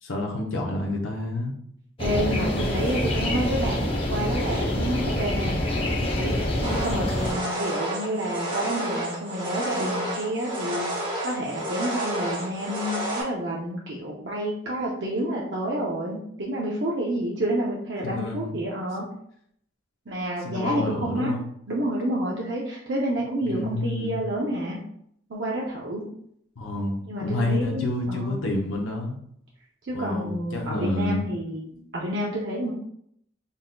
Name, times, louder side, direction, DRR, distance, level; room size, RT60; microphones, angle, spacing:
voice 1, 0.0-1.5 18.0-18.7 20.4-21.4 23.4-24.2 26.6-29.2 29.9-31.2 31.7-31.8, left 1 dB, 90° left, -1 dB, 0.7 m, -29 dB
sound 1, 2.0-7.3, left 1 dB, 30° left, 0.7 m, -26 dB
voice 2, 2.0-5.6 6.1-6.3 6.6-19.1 20.1-21.3 21.7-24.8 25.3-26.1 27.1-28.3 29.8-32.7, right 1 dB, 60° right, -4 dB, 0.6 m, -29 dB
sound 2, 6.6-13.2, right 1 dB, 25° right, 0.8 m, -30 dB
4.0 x 3.7 x 2.2 m, 0.69 s
head